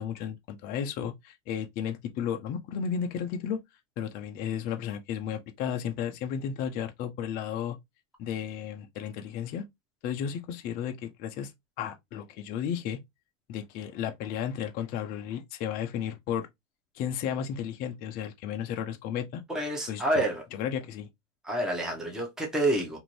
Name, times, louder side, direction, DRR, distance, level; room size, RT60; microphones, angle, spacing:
voice 1, 0.0-3.6 4.0-7.8 8.2-9.6 10.0-11.5 11.8-13.0 13.5-16.5 16.9-19.4 19.9-20.2 20.5-21.1, left 8 dB, 25° left, 0.3 m, -33 dB
voice 2, 19.5-20.4 21.4-23.0, right 1 dB, ahead, 0.7 m, -28 dB
2.6 x 2.5 x 3.0 m
hypercardioid pair, 120°, 38 cm